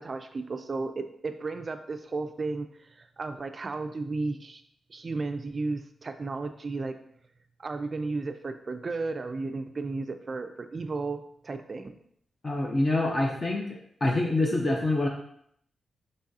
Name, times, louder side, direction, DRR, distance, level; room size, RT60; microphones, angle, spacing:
voice 1, 0.0-4.6 4.9-7.0 7.6-11.9, right 3 dB, 40° right, 8 dB, 0.3 m, -34 dB
voice 2, 12.4-13.7 14.0-15.1, left 2 dB, 30° left, 0 dB, 0.6 m, -25 dB
5.2 x 3.6 x 2.7 m, 0.68 s
cardioid pair, 105°, 0 cm